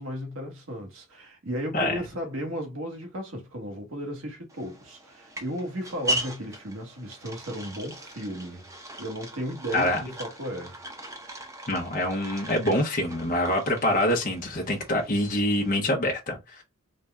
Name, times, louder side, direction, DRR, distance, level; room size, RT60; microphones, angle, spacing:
voice 1, 0.0-8.7 9.0-10.8, equal, 90° right, 1.3 m, -35 dB
sound 1, 4.5-15.7, right 1 dB, 15° right, 0.7 m, -38 dB
voice 2, 11.7-16.6, left 1 dB, 45° left, 0.8 m, -25 dB
4.1 x 2.2 x 3.4 m
head